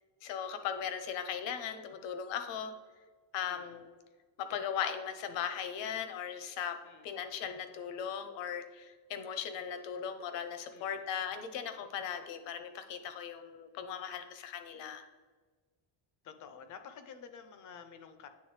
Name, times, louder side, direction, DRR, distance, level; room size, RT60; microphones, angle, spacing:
voice 1, 0.2-2.7 3.3-3.9 4.4-6.8 7.0-15.1, left 8 dB, 65° left, 8 dB, 0.8 m, -38 dB
voice 2, 3.4-3.8 6.8-7.1 10.7-11.0 16.2-18.3, left 6 dB, 40° left, 9 dB, 0.5 m, -50 dB
9.2 x 3.4 x 3.2 m, 1.4 s
cardioid pair, 165°, 46 cm